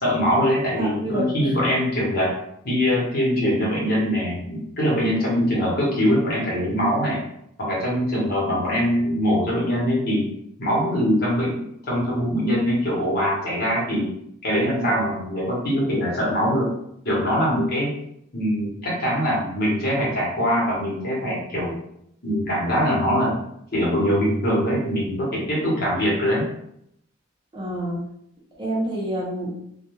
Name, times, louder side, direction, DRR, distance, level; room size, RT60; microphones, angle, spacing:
voice 1, 0.0-2.3 2.6-7.2 7.6-10.3 10.6-14.1 14.4-16.7 17.0-17.9 18.3-21.7 22.2-23.3 23.7-26.4, equal, 45° left, -5 dB, 0.9 m, -22 dB
voice 2, 0.7-1.6 3.4-3.5 27.5-28.0 28.6-29.5, right 1 dB, 25° right, -5 dB, 0.6 m, -28 dB
2.2 x 2.2 x 3.0 m, 0.75 s
head